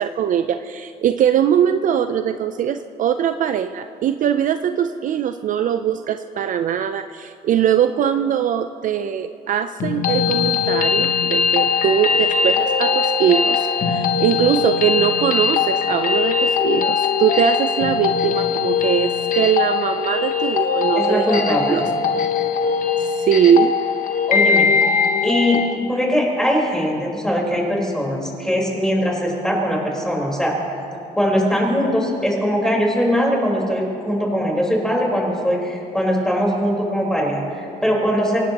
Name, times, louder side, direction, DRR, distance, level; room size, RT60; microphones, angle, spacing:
voice 1, 0.0-21.8 23.0-23.7, right 9 dB, 50° right, 9 dB, 0.5 m, -21 dB
sound 1, 9.8-25.8, left 6 dB, 50° left, 1.1 m, -20 dB
voice 2, 20.9-21.8 24.3-25.0 25.2-30.6 31.2-38.4, equal, 5° left, -2 dB, 4.3 m, -21 dB
24.5 x 18.5 x 3.0 m, 2.7 s
cardioid pair, 110°, 17 cm